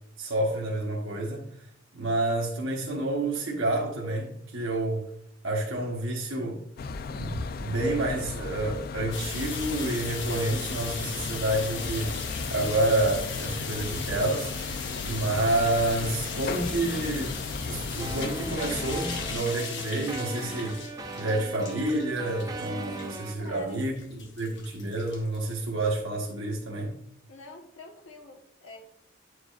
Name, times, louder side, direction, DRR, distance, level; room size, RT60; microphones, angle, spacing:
voice 1, 0.2-1.4 1.9-5.0 5.4-6.6 7.1-14.5 15.0-17.4 17.7-20.8 21.1-26.9, right 2 dB, 90° right, 1.0 m, -29 dB
sound 1, 6.8-19.4, left 4 dB, 50° left, 0.3 m, -36 dB
sound 2, 9.1-26.0, left 5 dB, 65° left, 1.0 m, -38 dB
sound 3, 18.0-23.4, right 2 dB, 20° right, 0.5 m, -39 dB
voice 2, 23.4-23.8 27.3-28.8, left 3 dB, 85° left, 1.2 m, -46 dB
9.2 x 4.7 x 2.4 m
head